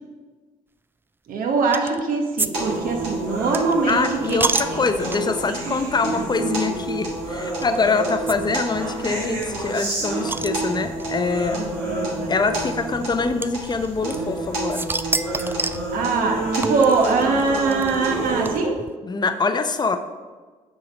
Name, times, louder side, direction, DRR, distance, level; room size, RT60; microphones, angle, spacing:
voice 1, 1.3-4.4 5.7-5.8 11.5-12.3 15.9-18.8, right 4 dB, 65° right, 3 dB, 1.1 m, -22 dB
sound 1, 1.7-2.0 2.4-5.5 6.1-6.2 6.5-6.6 7.6-7.8 8.3-8.4 8.6-8.7 8.9-9.0 9.4-11.1 12.0-12.1 13.4-14.4 14.7-15.9 16.6-18.9, right 3 dB, 15° right, 0.3 m, -28 dB
sound 2, 2.5-18.6, right 2 dB, 85° right, 1.9 m, -28 dB
voice 2, 3.9-11.6 12.3-14.9 19.0-20.0, left 4 dB, 25° left, 8 dB, 0.7 m, -24 dB
6.9 x 3.9 x 5.2 m, 1.4 s
hypercardioid pair, 50°, 16 cm